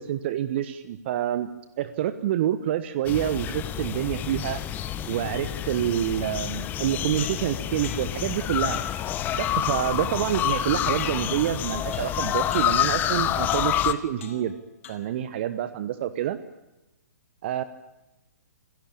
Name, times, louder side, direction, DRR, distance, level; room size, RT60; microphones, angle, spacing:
voice 1, 0.0-1.5 1.8-4.6 5.1-8.8 9.3-14.5 14.9-16.4 17.4-17.6, right 11 dB, 40° right, 12 dB, 1.2 m, -27 dB
sound 1, 3.0-13.9, left 11 dB, 20° left, 1.3 m, -28 dB
sound 2, 7.2-8.3 8.7-9.1 9.4-9.8 10.5-11.6 11.9-12.2 12.5-12.9 13.5-13.8 14.2-14.5 14.8-15.3, left 7 dB, 50° left, 4.6 m, -44 dB
27.5 x 17.0 x 8.7 m, 0.98 s
figure-of-eight pair, 125°, 9 cm